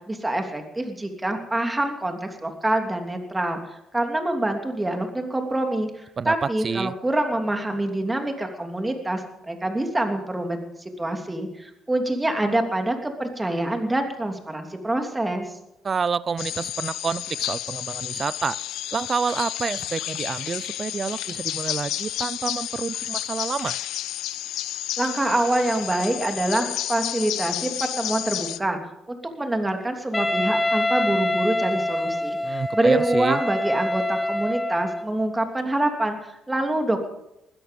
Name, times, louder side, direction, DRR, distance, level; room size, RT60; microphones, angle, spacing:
voice 1, 0.1-3.6 3.9-10.6 11.0-15.5 25.0-28.8 29.1-37.1, right 1 dB, 15° right, 4 dB, 2.8 m, -25 dB
voice 2, 6.2-6.9 15.8-18.6 18.9-23.8 32.4-33.4, right 5 dB, 40° right, 20 dB, 0.5 m, -28 dB
sound 1, 16.4-28.6, left 14 dB, 90° left, 0.6 m, -31 dB
Wind instrument woodwind instrument, 30.1-35.1, left 1 dB, 15° left, 1.0 m, -26 dB
20.0 x 13.5 x 5.3 m, 0.85 s
cardioid pair, 90°, 0 cm